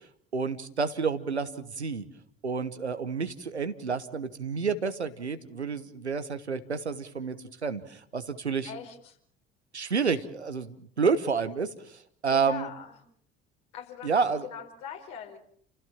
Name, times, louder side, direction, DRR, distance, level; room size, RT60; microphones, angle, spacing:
voice 1, 0.3-2.0 2.4-7.4 7.6-8.7 9.7-12.7 14.0-14.5, right 5 dB, 85° right, 11 dB, 1.3 m, -29 dB
voice 2, 8.6-9.2 12.3-13.0 13.7-15.4, left 8 dB, 60° left, 4 dB, 4.7 m, -41 dB
30.0 x 16.0 x 7.3 m, 0.64 s
figure-of-eight pair, 55°, 33 cm